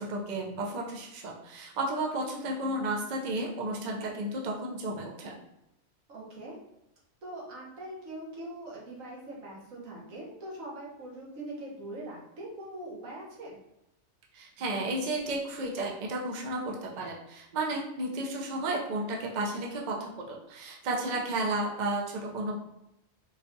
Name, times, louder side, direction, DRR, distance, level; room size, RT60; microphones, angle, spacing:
voice 1, 0.0-5.3 14.3-22.6, right 2 dB, 50° right, -1 dB, 0.6 m, -33 dB
voice 2, 6.1-6.6 7.2-13.6 20.9-21.0, right 1 dB, 90° right, -4 dB, 1.5 m, -42 dB
3.9 x 2.4 x 2.7 m, 0.87 s
omnidirectional pair, 1.3 m